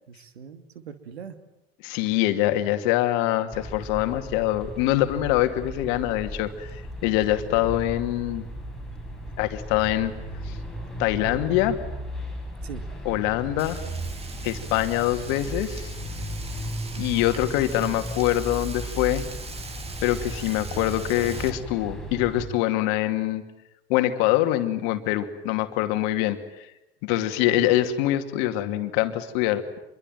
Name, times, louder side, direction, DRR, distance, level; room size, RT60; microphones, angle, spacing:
voice 1, 0.1-1.4 7.4-7.7 12.6-12.9 27.1-27.7, right 7 dB, 75° right, 10 dB, 2.8 m, -41 dB
voice 2, 1.8-8.4 9.4-10.1 10.4-10.5 11.0-11.8 13.0-13.8 14.4-15.9 17.0-19.2 20.0-23.4 23.9-26.4 27.0-29.8, left 14 dB, 55° left, 8 dB, 2.6 m, -24 dB
sound 1, 3.5-22.5, equal, ahead, 5.8 m, -36 dB
Frying (food), 13.6-21.5, right 4 dB, 20° right, 3.0 m, -41 dB
27.0 x 23.0 x 9.2 m, 0.88 s
hypercardioid pair, 90°, 32 cm